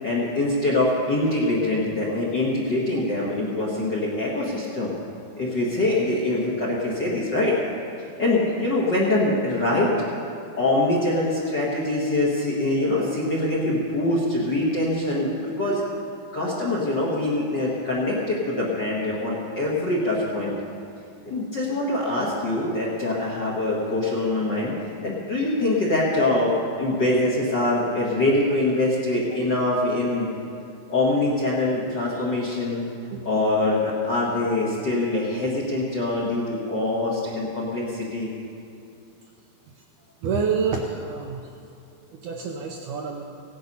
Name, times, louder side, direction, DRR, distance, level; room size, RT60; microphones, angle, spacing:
voice 1, 0.0-4.9 5.3-7.5 8.2-10.1 10.6-15.8 16.3-20.6 21.2-24.7 25.0-26.5 26.8-30.3 30.9-32.8 33.2-38.3, left 2 dB, 45° left, -5 dB, 1.6 m, -24 dB
voice 2, 40.2-41.5 42.1-43.2, right 5 dB, 75° right, 1 dB, 1.9 m, -28 dB
16.5 x 10.5 x 5.5 m, 2.5 s
omnidirectional pair, 4.3 m